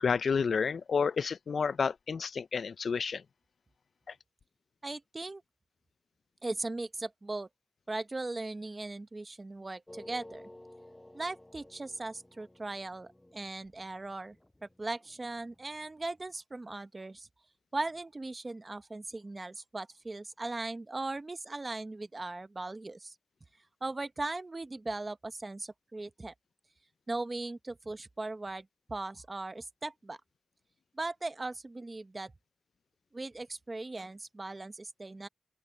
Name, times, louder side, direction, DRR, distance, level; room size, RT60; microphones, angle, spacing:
voice 1, 0.0-3.2, left 5 dB, 70° left, 0.4 m, -30 dB
voice 2, 4.8-5.4 6.4-7.5 7.9-10.4 11.1-14.4 14.6-17.3 17.7-23.1 23.8-26.3 27.1-30.2 30.9-32.3 33.1-35.3, right 2 dB, 30° right, 0.9 m, -38 dB
sound 1, 9.9-16.0, left 1 dB, 10° left, 7.9 m, -54 dB
open air
wide cardioid pair, 125°, 0 cm